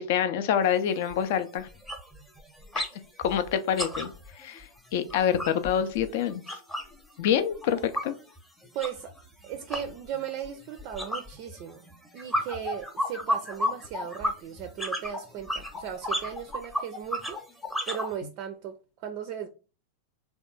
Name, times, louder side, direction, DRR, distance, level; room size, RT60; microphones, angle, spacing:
voice 1, 0.0-1.7 2.8-2.9 3.2-6.6 7.2-8.2, left 9 dB, 50° left, 0.4 m, -27 dB
sound 1, 0.6-0.7 1.1-1.3 1.6-2.9 3.2-7.0 7.3-18.1, equal, 5° left, 0.8 m, -33 dB
voice 2, 8.7-9.1 9.4-17.4 17.9-19.5, right 9 dB, 40° right, 0.4 m, -37 dB
3.5 x 2.3 x 3.9 m
figure-of-eight pair, 90°, 0 cm